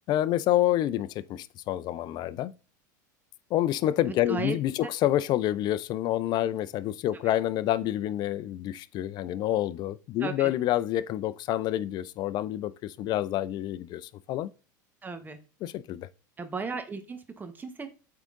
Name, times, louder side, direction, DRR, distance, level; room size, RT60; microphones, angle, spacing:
voice 1, 0.1-2.5 3.5-14.5 15.6-16.1, left 13 dB, 45° left, 0.5 m, -28 dB
voice 2, 4.0-4.6 10.2-10.5 15.0-15.4 16.4-17.9, right 4 dB, 20° right, 1.1 m, -35 dB
8.3 x 3.7 x 3.7 m
hypercardioid pair, 100°, 10 cm